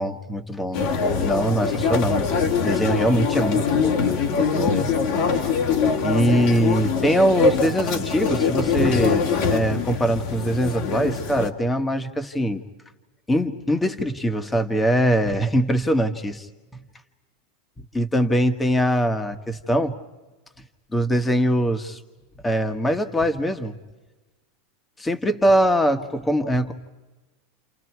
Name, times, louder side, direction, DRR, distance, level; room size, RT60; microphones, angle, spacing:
voice 1, 0.0-4.0 4.4-4.9 6.0-12.6 13.3-16.5 17.9-19.9 20.9-22.0 22.4-23.8 25.0-26.7, equal, 10° left, 8 dB, 1.7 m, -22 dB
sound 1, 0.7-11.5, left 5 dB, 60° left, 2.5 m, -23 dB
29.5 x 28.5 x 4.8 m, 1.2 s
supercardioid pair, 125°, 0 cm